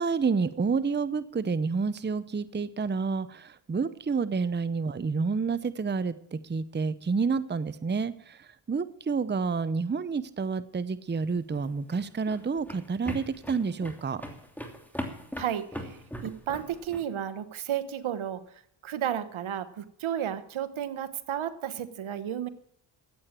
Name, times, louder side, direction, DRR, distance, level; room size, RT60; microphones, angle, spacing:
voice 1, 0.0-14.2, right 5 dB, 20° right, 15 dB, 0.7 m, -29 dB
sound 1, 11.4-17.0, equal, 5° left, 2.9 m, -40 dB
voice 2, 15.4-18.4 18.8-22.5, right 10 dB, 75° right, 12 dB, 1.2 m, -33 dB
14.0 x 8.7 x 7.4 m, 0.69 s
cardioid pair, 55°, 49 cm